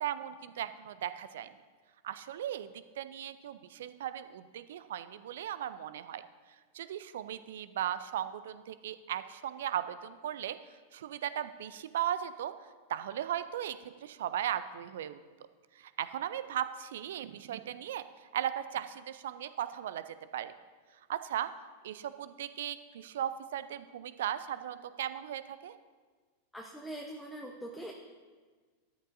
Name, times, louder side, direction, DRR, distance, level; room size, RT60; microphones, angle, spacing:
voice 1, 0.0-1.5 2.0-2.7 3.0-6.2 6.7-10.6 10.9-12.5 12.9-15.2 15.8-18.0 18.3-20.5 21.1-21.5 21.8-25.7, right 10 dB, 60° right, 13 dB, 0.4 m, -37 dB
voice 2, 26.5-27.9, right 1 dB, ahead, 0 dB, 0.9 m, -42 dB
13.5 x 10.0 x 2.6 m, 1.5 s
figure-of-eight pair, 90°, 0 cm